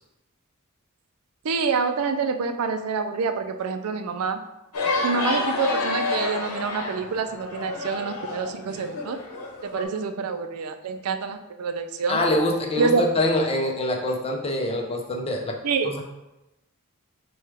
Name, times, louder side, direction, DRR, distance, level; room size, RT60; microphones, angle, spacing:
voice 1, 1.4-4.4 5.0-9.2 9.6-12.2 12.8-13.0 15.6-15.9, right 5 dB, 85° right, 8 dB, 0.4 m, -27 dB
sound 1, 4.7-9.8, left 2 dB, 75° left, 0.9 m, -29 dB
voice 2, 12.1-15.6 15.8-16.0, left 1 dB, 25° left, 2 dB, 0.6 m, -25 dB
6.4 x 2.3 x 3.3 m, 0.96 s
head